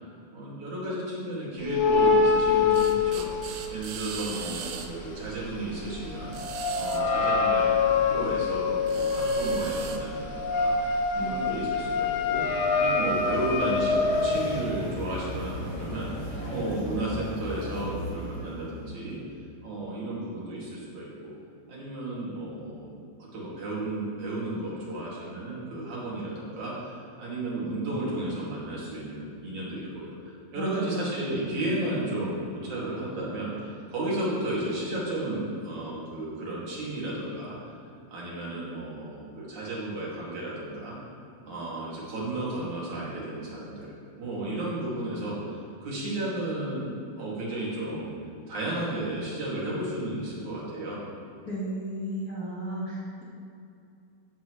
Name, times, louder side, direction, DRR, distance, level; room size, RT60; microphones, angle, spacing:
voice 1, 0.3-3.3 3.7-6.4 6.8-12.5 12.7-19.2 19.6-21.3 21.7-23.0 23.3-37.7 38.1-41.0 41.5-46.9 47.2-48.1 48.5-51.0, right 1 dB, 60° right, -7 dB, 3.7 m, -33 dB
sound 1, 1.6-4.1 4.4-14.6, left 4 dB, 70° left, 2.1 m, -25 dB
sound 2, 2.3-16.8, right 8 dB, 80° right, 1.5 m, -44 dB
sound 3, 13.1-19.1, left 1 dB, 15° left, 1.3 m, -37 dB
voice 2, 30.5-31.2 51.5-53.2, right 1 dB, 35° left, -8 dB, 1.8 m, -34 dB
15.0 x 8.4 x 3.2 m, 2.6 s
omnidirectional pair, 3.8 m